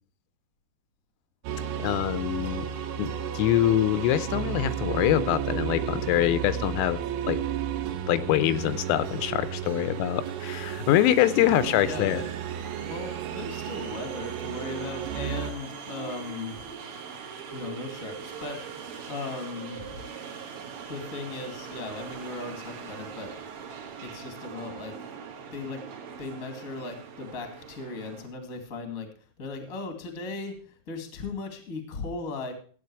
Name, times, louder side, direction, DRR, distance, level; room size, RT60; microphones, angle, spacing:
sound 1, 1.4-15.5, right 9 dB, 80° right, 3.5 m, -33 dB
voice 1, 1.8-2.7 3.0-7.0 7.3-7.4 8.1-12.2, left 13 dB, 90° left, 13 dB, 3.4 m, -24 dB
sound 2, 8.5-28.3, right 6 dB, 55° right, 2.7 m, -42 dB
voice 2, 11.3-12.3 12.8-16.7 17.5-20.0 20.9-23.3 24.0-24.9 25.5-25.8 26.2-29.1 29.4-32.5, left 3 dB, 35° left, 6 dB, 1.2 m, -37 dB
14.5 x 8.9 x 4.8 m, 0.44 s
omnidirectional pair, 5.9 m